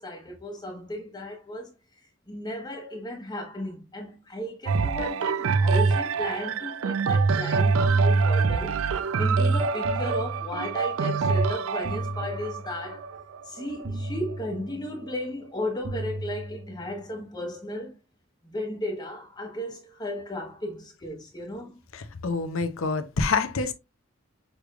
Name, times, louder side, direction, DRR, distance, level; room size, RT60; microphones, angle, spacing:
voice 1, 0.0-1.7 2.3-8.7 9.2-13.1 13.4-17.9 18.4-21.8, left 1 dB, 20° left, 1.0 m, -35 dB
sound 1, 4.7-14.4 15.1-15.2, right 4 dB, 85° right, 0.4 m, -25 dB
sound 2, 7.9-9.0 9.8-11.0 11.8-13.0 13.8-15.0 15.8-17.0, right 1 dB, 65° right, 1.0 m, -36 dB
voice 2, 21.9-23.7, left 4 dB, 80° left, 0.7 m, -27 dB
6.4 x 3.3 x 2.4 m
head